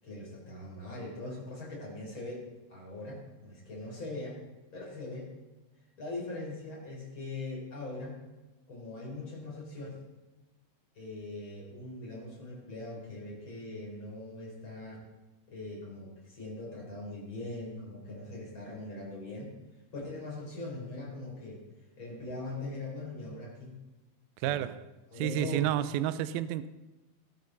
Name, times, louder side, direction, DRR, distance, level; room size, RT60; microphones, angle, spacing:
voice 1, 0.0-4.4 4.7-5.3 6.0-8.2 8.7-10.0 11.0-15.0 15.5-19.6 19.9-21.6 22.0-23.8 24.4-24.6 25.1-25.7, left 2 dB, 30° left, 5.0 m, -41 dB
voice 2, 24.4-24.8 25.2-26.7, right 12 dB, 80° right, 2.4 m, -30 dB
19.5 x 13.0 x 4.0 m
omnidirectional pair, 4.5 m